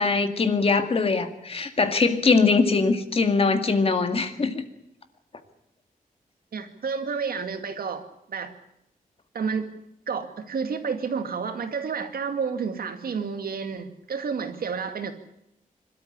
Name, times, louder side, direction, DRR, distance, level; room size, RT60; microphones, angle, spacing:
voice 1, 0.0-4.6, left 4 dB, 40° left, 8 dB, 2.0 m, -22 dB
voice 2, 6.5-8.0 8.3-8.5 9.3-9.7 10.1-15.1, right 5 dB, 90° right, 7 dB, 2.3 m, -30 dB
25.0 x 13.5 x 9.9 m, 0.81 s
wide cardioid pair, 180°, 15 cm